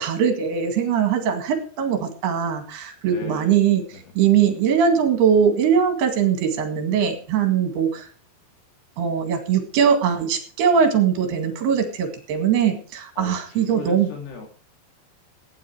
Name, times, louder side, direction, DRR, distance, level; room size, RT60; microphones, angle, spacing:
voice 1, 0.0-3.8 4.2-8.1 9.0-14.1, right 7 dB, 75° right, 6 dB, 4.0 m, -21 dB
voice 2, 3.1-3.6 3.9-4.0 13.2-14.5, left 5 dB, 90° left, 2 dB, 5.2 m, -37 dB
16.0 x 9.5 x 4.9 m, 0.40 s
omnidirectional pair, 4.7 m